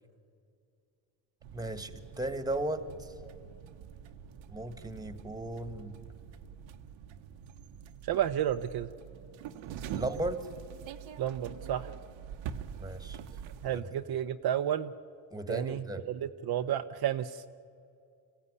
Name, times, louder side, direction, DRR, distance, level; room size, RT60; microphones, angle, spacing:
sound 1, 1.4-13.8, right 8 dB, 80° right, 1.2 m, -45 dB
voice 1, 1.5-3.1 4.5-6.0 9.9-10.4 12.8-13.2 13.7-13.8 15.3-16.1, right 1 dB, 10° right, 11 dB, 1.6 m, -36 dB
voice 2, 8.0-8.9 11.2-11.9 13.6-14.9 15.5-17.4, right 10 dB, 55° right, 8 dB, 0.8 m, -31 dB
25.5 x 16.0 x 9.7 m, 2.4 s
cardioid pair, 110°, 45 cm